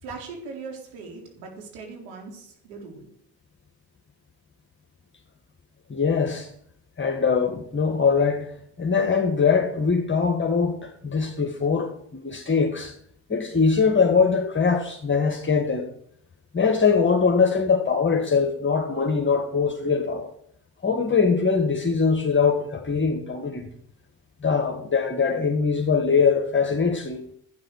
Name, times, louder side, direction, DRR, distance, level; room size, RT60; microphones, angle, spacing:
voice 1, 0.0-3.1, right 4 dB, 85° right, 4.3 m, -39 dB
voice 2, 5.9-6.5 7.0-8.5 8.8-12.9 13.3-15.9 16.5-20.3 20.8-23.7 24.4-27.2, left 5 dB, 25° left, 1.8 m, -22 dB
11.5 x 9.4 x 6.5 m
supercardioid pair, 70°, 48 cm